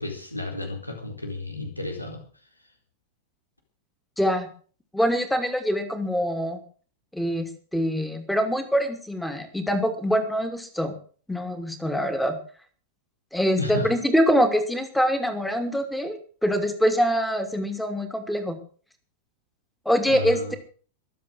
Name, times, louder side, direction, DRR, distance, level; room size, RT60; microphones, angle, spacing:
voice 1, 0.0-2.2 13.6-13.9 20.1-20.6, left 1 dB, 85° left, 3 dB, 4.2 m, -32 dB
voice 2, 4.2-4.5 4.9-6.6 7.1-10.9 11.3-12.4 13.3-18.6 19.8-20.6, equal, 5° left, 8 dB, 2.8 m, -24 dB
22.5 x 7.7 x 6.5 m, 0.42 s
figure-of-eight pair, 90°, 0 cm